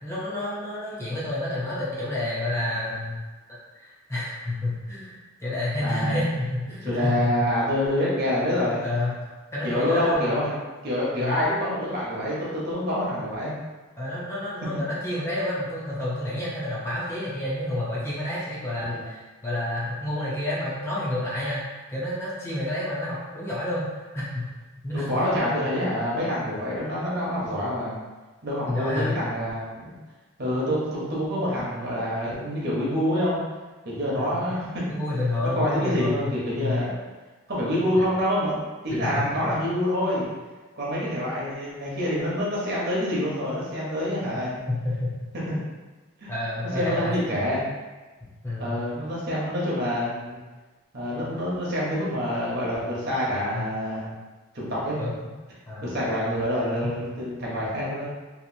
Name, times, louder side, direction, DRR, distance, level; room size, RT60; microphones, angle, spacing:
voice 1, 0.0-3.2 3.7-7.3 8.8-9.1 9.5-10.3 11.2-11.4 14.0-23.9 24.1-24.5 24.8-25.2 28.7-29.2 34.2-34.3 34.9-36.3 36.6-36.8 39.1-39.2 44.7-45.1 45.5-45.6 46.3-47.2 48.2-48.8 53.5-53.7 55.0-55.1 55.7-55.8, left 1 dB, 15° left, -8 dB, 0.6 m, -29 dB
voice 2, 5.8-6.1 6.8-8.8 9.6-10.5 10.8-13.5 18.8-19.0 24.9-28.0 28.4-29.9 30.4-33.4 33.8-34.8 35.5-36.9 37.5-40.3 40.8-44.6 45.3-45.4 46.2-46.3 46.7-47.7 48.6-50.4 50.9-54.1 54.5-55.0 55.8-58.0, equal, 50° right, -6 dB, 0.9 m, -26 dB
2.8 x 2.5 x 2.6 m, 1.3 s
head